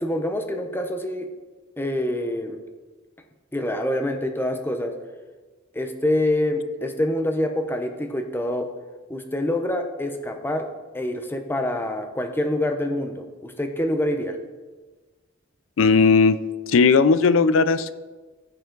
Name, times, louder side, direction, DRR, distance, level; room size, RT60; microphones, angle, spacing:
voice 1, 0.0-1.3 1.8-2.6 3.5-4.9 5.7-8.7 9.1-10.7 10.9-14.4, left 1 dB, 10° left, 5 dB, 0.7 m, -26 dB
voice 2, 15.8-16.4 16.7-17.9, left 4 dB, 75° left, 15 dB, 0.4 m, -17 dB
14.5 x 4.8 x 3.9 m, 1.3 s
head